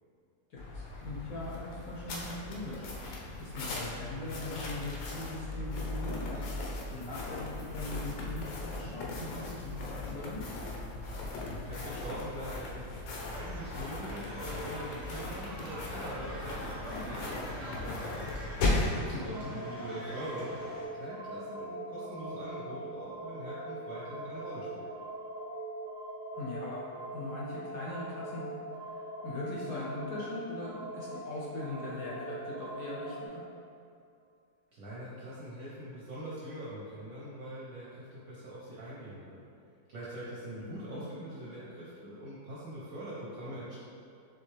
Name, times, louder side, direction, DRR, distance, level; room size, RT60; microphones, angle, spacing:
voice 1, 0.5-2.9 3.4-6.6 6.9-10.4 19.1-19.6 26.3-26.8 27.1-28.4 28.8-28.9 29.2-33.4 40.6-41.1, left 2 dB, 65° left, -5 dB, 0.9 m, -40 dB
sound 1, 0.6-19.0, left 2 dB, 90° left, 1.4 m, -37 dB
voice 2, 11.5-18.3 18.9-20.6 20.9-24.9 34.7-39.4 39.9-43.8, right 1 dB, 60° right, -8 dB, 1.0 m, -43 dB
sound 2, 13.3-20.8, right 1 dB, 20° right, 0.8 m, -45 dB
sound 3, 19.3-33.3, right 1 dB, 85° right, 0.7 m, -42 dB
4.4 x 3.2 x 3.2 m, 2.5 s
omnidirectional pair, 2.0 m